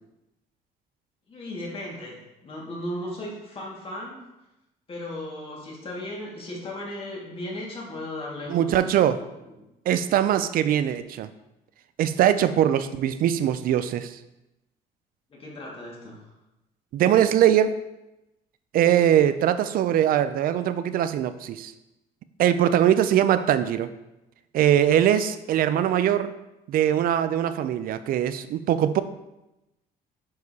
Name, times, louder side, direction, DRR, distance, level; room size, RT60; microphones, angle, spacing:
voice 1, 1.3-4.2 4.9-8.9 9.5-9.6 15.3-16.2 22.8-22.9, left 1 dB, 35° left, -3 dB, 1.9 m, -36 dB
voice 2, 8.5-9.2 9.9-11.3 12.0-14.2 16.9-17.8 18.7-21.7 22.4-23.9 24.5-26.4 26.7-29.0, right 10 dB, 60° right, 12 dB, 0.4 m, -21 dB
8.1 x 4.7 x 2.8 m, 0.94 s
cardioid pair, 110°, 17 cm